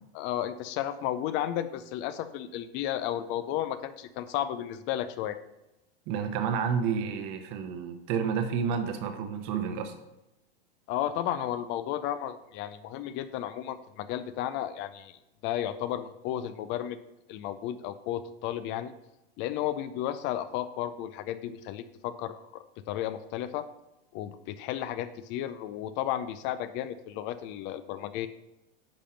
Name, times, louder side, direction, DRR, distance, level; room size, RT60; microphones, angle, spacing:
voice 1, 0.1-5.4 10.9-15.2 15.4-17.0 17.3-18.9 19.4-23.7 24.1-28.3, left 11 dB, 40° left, 12 dB, 0.5 m, -33 dB
voice 2, 6.1-9.9, right 6 dB, 50° right, 7 dB, 1.1 m, -30 dB
10.0 x 3.5 x 5.7 m, 0.93 s
hypercardioid pair, 125°, 30 cm